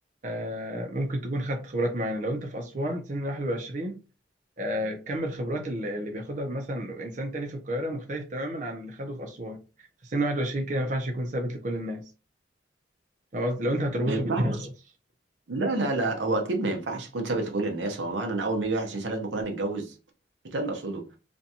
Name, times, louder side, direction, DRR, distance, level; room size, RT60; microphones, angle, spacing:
voice 1, 0.2-4.0 4.6-12.0 13.3-14.7, right 1 dB, 45° right, 0.5 m, -30 dB
voice 2, 14.1-14.5 15.5-19.9 20.4-21.1, right 2 dB, 85° right, 0.7 m, -29 dB
2.5 x 2.2 x 2.7 m
head